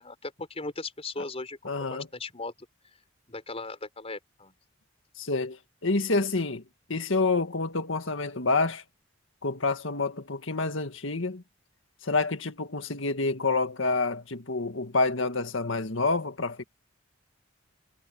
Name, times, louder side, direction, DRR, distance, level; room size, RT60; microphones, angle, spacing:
voice 1, 0.0-2.7 3.3-4.5, left 3 dB, 30° left, 4.5 m, -38 dB
voice 2, 1.6-2.1 5.2-6.6 6.9-8.8 9.4-11.4 12.0-16.6, left 3 dB, 75° left, 1.9 m, -28 dB
head